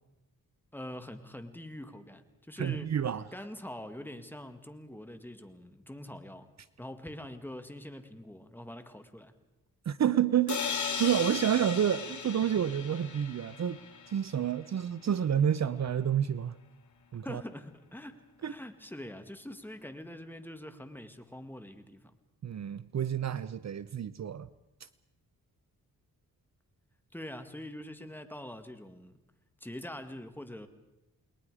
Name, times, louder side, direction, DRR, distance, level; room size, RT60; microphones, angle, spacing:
voice 1, 0.7-2.9 3.3-6.5 6.8-9.3 17.2-22.1 27.1-29.2 29.6-30.7, left 1 dB, 5° left, 8 dB, 1.8 m, -44 dB
voice 2, 2.6-3.2 9.9-13.8 14.1-16.6 17.1-17.4 18.4-18.5 22.4-24.5, right 9 dB, 50° right, 16 dB, 0.7 m, -29 dB
sound 1, 10.5-14.3, left 6 dB, 55° left, 2.8 m, -36 dB
29.5 x 21.0 x 4.9 m, 0.94 s
cardioid pair, 95°, 34 cm